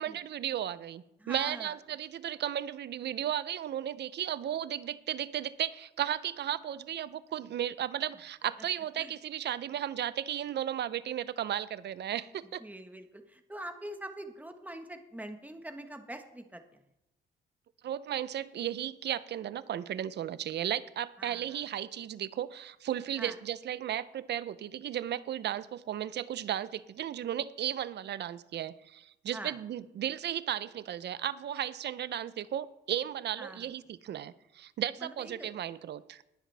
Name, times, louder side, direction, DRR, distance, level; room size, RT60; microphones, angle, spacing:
voice 1, 0.0-12.6 17.8-36.2, right 11 dB, 60° right, 16 dB, 0.6 m, -35 dB
voice 2, 1.2-1.7 9.0-9.1 12.6-16.6 21.2-21.6 23.2-23.3 29.3-29.5 33.4-33.6 35.0-35.5, right 1 dB, 10° right, 6 dB, 1.4 m, -44 dB
20.5 x 7.3 x 3.4 m, 0.85 s
cardioid pair, 90°, 20 cm